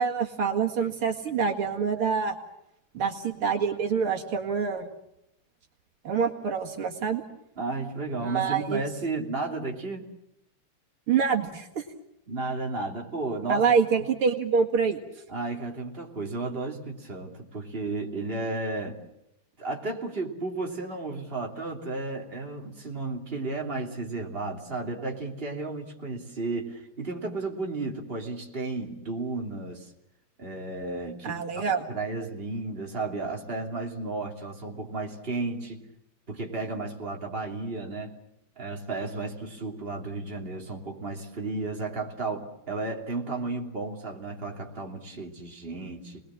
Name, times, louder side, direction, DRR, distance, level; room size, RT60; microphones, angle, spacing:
voice 1, 0.0-2.4 2.9-4.9 6.0-7.2 8.2-8.8 11.1-11.8 13.5-15.0 31.2-31.8, right 6 dB, 75° right, 2 dB, 2.8 m, -26 dB
voice 2, 7.6-10.1 12.3-13.6 15.3-19.0 19.6-29.9 30.4-35.8 36.3-38.1 38.6-46.2, right 3 dB, 25° right, 1 dB, 3.0 m, -33 dB
29.5 x 20.5 x 7.5 m, 0.83 s
omnidirectional pair, 2.4 m